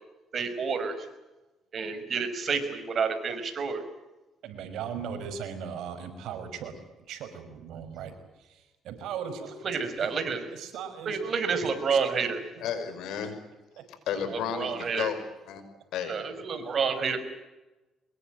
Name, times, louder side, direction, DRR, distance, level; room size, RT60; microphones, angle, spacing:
voice 1, 0.3-1.1 1.7-3.8 9.6-10.5 11.0-12.4 14.3-15.1 16.1-17.2, right 5 dB, 45° right, 9 dB, 5.2 m, -29 dB
voice 2, 4.4-6.8 7.1-8.1 8.5-9.6 10.0-10.1 10.5-11.2 11.9-12.0 13.1-13.2 13.8-13.9, right 7 dB, 80° right, 7 dB, 5.7 m, -38 dB
voice 3, 12.6-13.4 14.1-15.2 15.5-15.6 15.9-16.2, left 8 dB, 80° left, 10 dB, 5.6 m, -32 dB
24.0 x 22.0 x 9.0 m, 1.1 s
cardioid pair, 110°, 0 cm